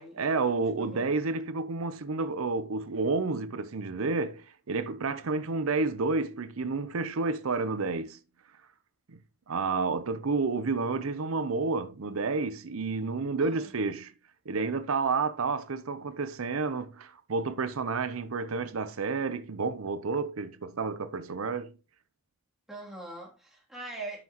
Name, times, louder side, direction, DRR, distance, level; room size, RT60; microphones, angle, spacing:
voice 1, 0.2-8.2 9.1-9.2 9.5-14.1 14.5-21.7, right 4 dB, 85° right, 0.7 m, -30 dB
voice 2, 0.7-1.1 13.4-13.7 22.7-24.2, right 2 dB, ahead, 2.9 m, -42 dB
11.5 x 5.8 x 3.0 m
head